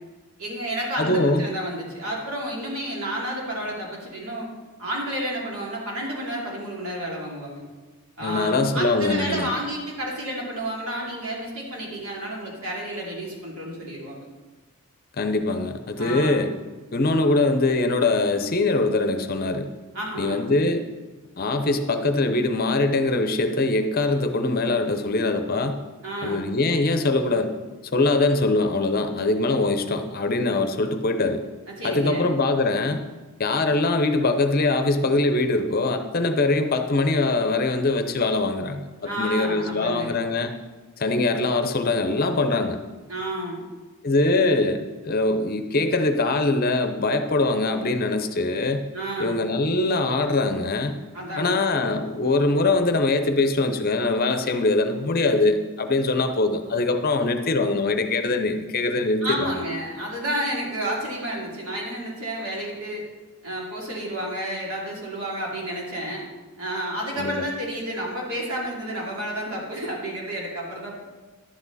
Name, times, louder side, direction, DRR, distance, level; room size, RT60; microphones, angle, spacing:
voice 1, 0.4-4.5 4.8-7.6 8.2-14.3 16.0-16.4 19.9-20.4 26.0-26.5 31.7-32.3 39.0-40.1 43.1-43.6 48.9-49.4 51.1-51.7 59.2-63.0 63.4-66.2 66.6-71.0, right 1 dB, 70° right, -3 dB, 2.9 m, -31 dB
voice 2, 1.0-1.4 8.2-9.5 15.2-16.5 16.9-19.7 20.2-20.8 21.4-25.8 26.2-27.5 27.9-31.4 31.8-33.0 33.4-40.5 41.0-42.8 44.0-48.9 49.2-51.0 51.4-59.5 67.2-67.4, left 2 dB, 40° left, 8 dB, 0.7 m, -22 dB
11.0 x 8.6 x 4.1 m, 1.3 s
head